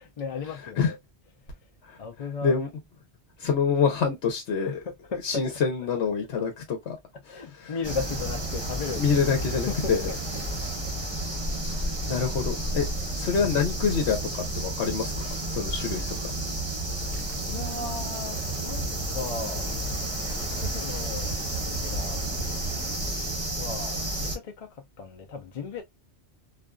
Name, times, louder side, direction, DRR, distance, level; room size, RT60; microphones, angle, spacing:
voice 1, 0.2-1.0 2.0-2.5 4.6-5.4 7.3-9.3 9.7-9.8 17.1-19.7 20.6-21.4 21.7-22.2 23.6-24.7 25.0-25.8, left 4 dB, 50° left, 0.5 m, -36 dB
voice 2, 3.4-4.8 5.2-7.0 7.3-7.7 9.0-10.1 12.1-12.9 13.2-16.3, left 6 dB, 75° left, 1.0 m, -26 dB
sound 1, 7.8-24.4, right 1 dB, 25° right, 0.9 m, -31 dB
2.5 x 2.3 x 2.2 m
omnidirectional pair, 1.1 m